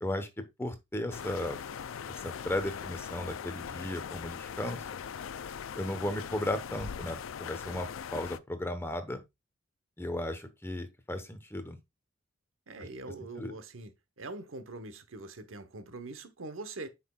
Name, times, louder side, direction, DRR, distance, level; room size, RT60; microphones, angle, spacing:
voice 1, 0.0-1.6 2.1-4.8 5.8-9.2 10.0-11.8 13.4-13.5, left 1 dB, 10° left, 1.0 m, -35 dB
sound 1, 1.1-8.4, left 7 dB, 75° left, 0.4 m, -40 dB
voice 2, 12.7-13.9 14.2-16.9, right 2 dB, 85° right, 1.0 m, -43 dB
7.9 x 5.9 x 2.3 m
head